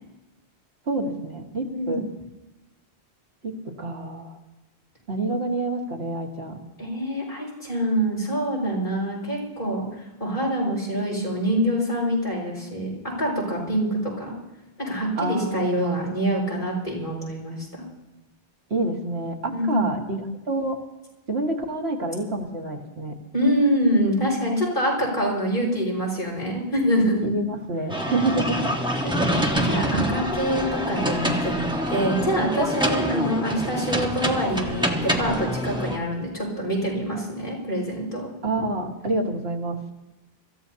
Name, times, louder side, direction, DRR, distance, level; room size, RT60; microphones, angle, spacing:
voice 1, 0.9-2.0 3.4-4.4 5.1-6.6 15.2-16.1 18.7-20.8 21.3-23.1 27.2-28.7 29.7-30.1 38.4-39.8, right 2 dB, 85° right, 0 dB, 2.3 m, -28 dB
voice 2, 6.8-9.8 10.2-14.3 14.8-17.9 19.5-19.9 23.3-27.3 29.0-38.3, equal, 55° left, -3 dB, 5.9 m, -25 dB
sound 1, 27.9-36.0, equal, 5° right, 1.4 m, -26 dB
26.0 x 14.5 x 2.9 m, 1.0 s
omnidirectional pair, 1.0 m